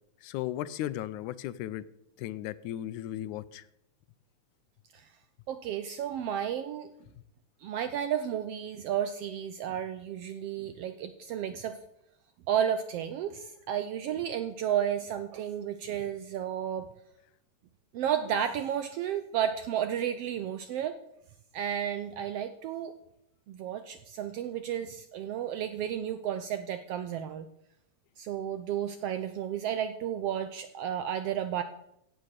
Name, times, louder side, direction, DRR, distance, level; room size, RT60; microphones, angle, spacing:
voice 1, 0.2-1.8 2.2-3.6, left 13 dB, 90° left, 15 dB, 2.1 m, -36 dB
voice 2, 5.5-6.9 7.6-11.8 12.5-16.9 17.9-21.0 21.5-22.9 23.5-27.5 28.2-31.6, right 9 dB, 80° right, 10 dB, 1.4 m, -32 dB
16.0 x 6.5 x 6.5 m, 0.79 s
omnidirectional pair, 3.4 m